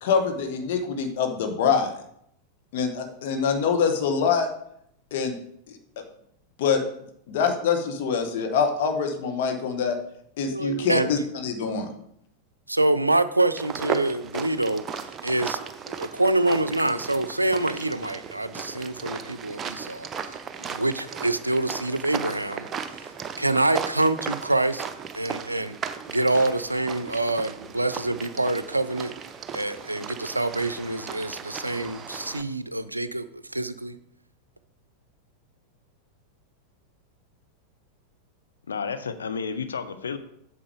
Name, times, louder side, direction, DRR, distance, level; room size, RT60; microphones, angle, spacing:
voice 1, 0.0-1.9 2.7-4.5 5.1-5.3 5.7-5.8 6.6-6.8 7.3-10.0 10.4-11.9, left 6 dB, 55° left, 5 dB, 1.3 m, -24 dB
voice 2, 10.5-11.3 12.7-14.8 15.2-15.6 15.9-20.1 20.6-22.7 23.4-24.9 25.1-25.8 26.1-29.1 29.5-33.3 33.5-34.0, right 2 dB, 85° right, 13 dB, 0.4 m, -26 dB
sound 1, 13.6-32.4, right 6 dB, 25° right, 0.7 m, -36 dB
voice 3, 38.7-40.2, left 5 dB, 70° left, 10 dB, 0.6 m, -31 dB
8.6 x 6.7 x 3.5 m, 0.71 s
figure-of-eight pair, 90°, 0 cm